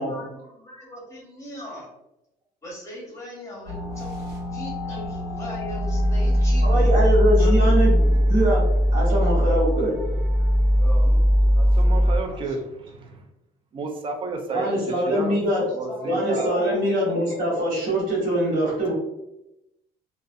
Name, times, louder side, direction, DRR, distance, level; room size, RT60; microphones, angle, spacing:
voice 1, 0.0-1.9 2.6-6.9 7.4-7.7 10.8-11.2 15.2-17.2, left 1 dB, 20° left, -3 dB, 0.9 m, -39 dB
sound 1, 3.7-12.2, equal, 75° right, 1.0 m, -20 dB
voice 2, 6.6-10.0 14.5-15.6 16.0-18.9, equal, 55° right, -4 dB, 1.3 m, -23 dB
voice 3, 11.5-13.2 13.7-15.3 15.7-16.8, right 3 dB, 30° right, 4 dB, 0.4 m, -32 dB
2.5 x 2.1 x 2.3 m, 0.88 s
cardioid pair, 140°, 16 cm